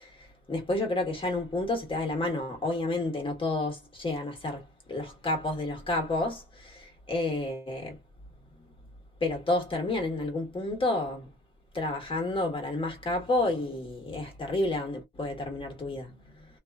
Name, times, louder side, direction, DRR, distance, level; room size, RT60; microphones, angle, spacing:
voice 1, 0.0-8.0 9.2-11.3 11.7-16.5, left 2 dB, 25° left, 1.4 m, -30 dB
2.5 x 2.5 x 2.3 m
cardioid pair, 90°, 20 cm